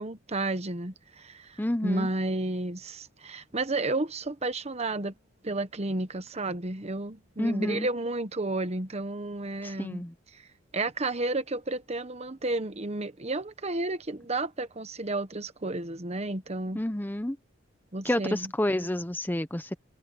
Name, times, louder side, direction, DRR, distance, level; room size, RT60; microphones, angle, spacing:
voice 1, 0.0-5.1 5.4-10.0 10.3-10.5 10.7-16.8 17.9-18.5, right 2 dB, 30° right, 1.1 m, -32 dB
voice 2, 1.6-2.1 7.4-7.9 9.6-10.1 16.7-17.4 18.0-19.8, left 1 dB, 10° left, 0.8 m, -29 dB
head